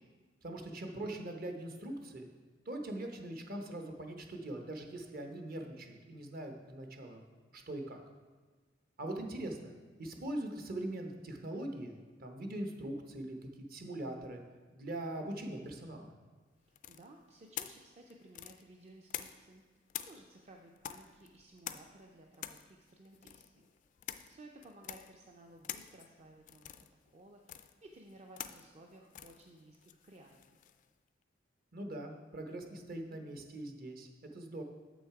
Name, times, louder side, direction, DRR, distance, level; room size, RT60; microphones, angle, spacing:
voice 1, 0.4-2.2 2.7-7.2 7.5-8.0 9.0-9.7 10.0-14.4 14.7-16.1 31.7-34.6, right 1 dB, 50° right, 4 dB, 0.9 m, -42 dB
voice 2, 16.6-19.6 20.0-23.7 24.3-26.9 27.1-30.6, right 2 dB, 35° right, 1 dB, 0.5 m, -57 dB
sound 1, 16.8-19.6 19.9-30.9, left 11 dB, 45° left, 0.3 m, -47 dB
7.4 x 6.1 x 4.7 m, 1.4 s
head